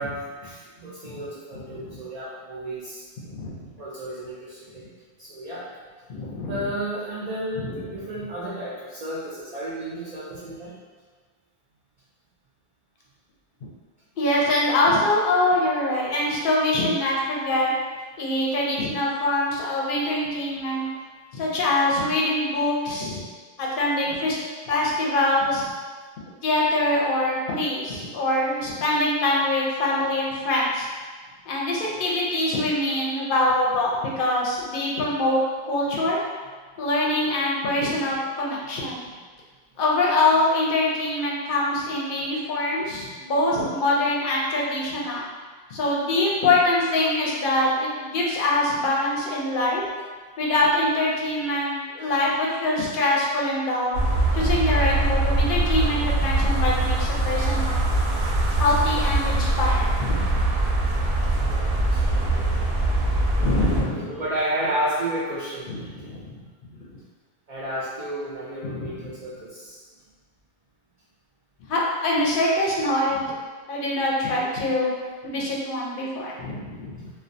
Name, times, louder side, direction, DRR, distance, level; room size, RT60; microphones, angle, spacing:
voice 1, 0.0-3.0 3.7-4.8 5.2-5.7 6.5-10.7 20.8-20.9 24.1-24.2 31.8-32.1 61.4-62.4 63.4-66.1 67.5-69.8, right 1 dB, 55° right, -8 dB, 0.5 m, -32 dB
voice 2, 1.5-2.0 3.2-3.6 6.1-6.6 7.6-7.7 14.2-17.7 18.2-20.9 21.3-23.2 23.6-24.4 24.7-25.7 26.4-30.9 31.5-35.4 35.6-36.2 36.8-39.0 39.8-45.2 45.7-49.8 50.4-54.0 54.3-58.0 58.5-60.4 61.8-61.9 63.4-64.1 65.7-66.4 66.8-67.0 68.6-69.1 71.7-73.3 73.7-74.9 75.2-77.1, left 2 dB, 65° left, -4 dB, 0.7 m, -24 dB
sound 1, 53.9-63.8, right 2 dB, 80° right, 0.8 m, -22 dB
2.3 x 2.2 x 2.5 m, 1.5 s
omnidirectional pair, 1.0 m